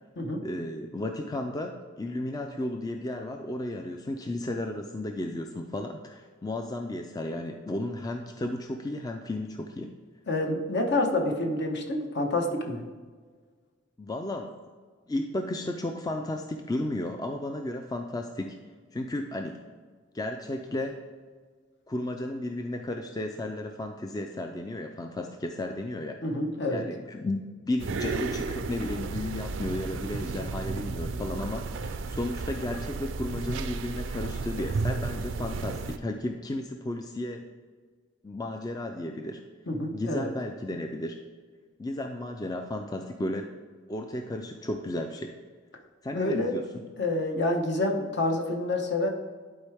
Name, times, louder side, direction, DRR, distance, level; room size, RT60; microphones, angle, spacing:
voice 1, 0.4-1.7 2.0-9.9 14.0-14.6 15.1-18.6 18.9-19.6 20.1-21.0 21.9-26.2 26.7-37.4 38.2-39.4 39.9-41.2 41.8-43.5 43.9-45.4 46.0-46.7, left 1 dB, 20° left, 4 dB, 0.4 m, -33 dB
voice 2, 10.3-12.8 26.2-26.8 39.7-40.3 46.1-46.5 47.0-49.1, left 2 dB, 60° left, 2 dB, 1.1 m, -28 dB
sound 1, 27.8-36.0, right 4 dB, 75° right, 0.4 m, -33 dB
11.0 x 4.5 x 3.5 m, 1.5 s
head